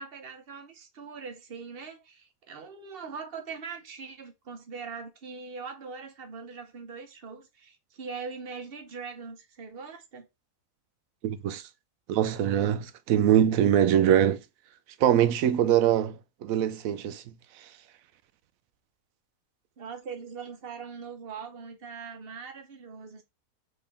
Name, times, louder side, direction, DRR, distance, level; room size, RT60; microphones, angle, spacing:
voice 1, 0.0-10.3 19.8-23.2, right 5 dB, 50° right, 1.0 m, -41 dB
voice 2, 11.2-11.6 12.1-14.4 15.0-16.2 16.4-17.2, right 10 dB, 80° right, 1.0 m, -23 dB
3.8 x 3.6 x 3.5 m
omnidirectional pair, 1.4 m